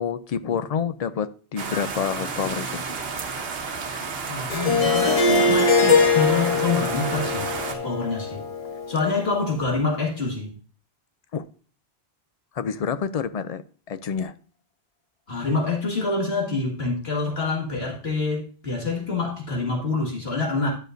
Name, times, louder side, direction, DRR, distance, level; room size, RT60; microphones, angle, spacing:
voice 1, 0.0-2.8 11.3-11.4 12.6-13.6 13.9-14.4, left 7 dB, 55° left, 0.4 m, -28 dB
sound 1, 1.6-7.7, right 5 dB, 70° right, 1.1 m, -32 dB
voice 2, 4.3-8.4 8.9-10.6 15.3-20.7, left 3 dB, 75° left, 2.0 m, -26 dB
Harp, 4.5-9.5, left 3 dB, 35° left, 0.9 m, -22 dB
11.5 x 6.4 x 2.6 m
omnidirectional pair, 1.1 m